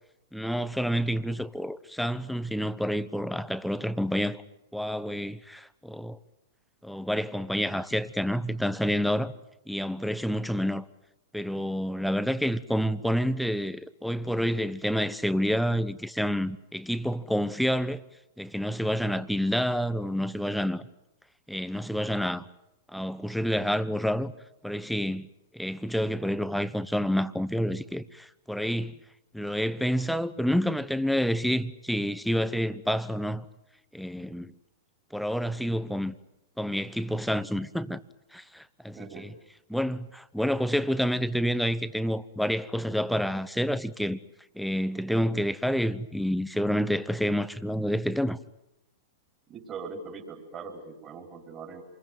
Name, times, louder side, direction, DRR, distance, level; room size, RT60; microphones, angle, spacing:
voice 1, 0.3-4.4 4.7-6.2 6.8-9.3 9.7-10.9 11.3-18.0 18.4-20.8 21.5-22.4 22.9-24.3 24.6-25.3 25.5-29.0 29.3-33.5 33.9-34.5 35.1-36.1 36.6-38.0 38.3-39.3 39.7-44.2 44.5-48.4, equal, ahead, 1.1 m, -28 dB
voice 2, 38.9-39.4 49.5-51.8, right 5 dB, 25° right, 4.8 m, -41 dB
27.5 x 21.5 x 9.3 m
hypercardioid pair, 120°, 0 cm